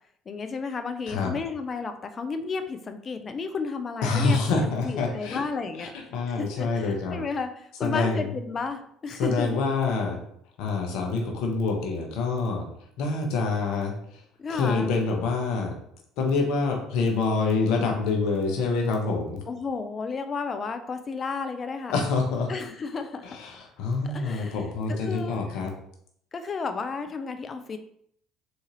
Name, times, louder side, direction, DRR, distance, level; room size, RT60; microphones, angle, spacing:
voice 1, 0.3-4.4 4.8-5.9 6.4-7.5 7.8-9.6 14.4-14.9 19.5-21.9 22.5-23.3 24.0-24.6 24.9-25.4 26.3-27.8, left 4 dB, 35° left, 8 dB, 0.4 m, -32 dB
voice 2, 4.0-5.4 5.8-7.2 7.8-8.4 9.1-10.2 10.6-12.7 13.0-14.2 14.5-15.7 16.2-19.4 21.9-22.5 23.2-25.7, left 4 dB, 65° left, 1 dB, 0.8 m, -26 dB
3.8 x 2.7 x 3.0 m, 0.67 s
hypercardioid pair, 60°, 0 cm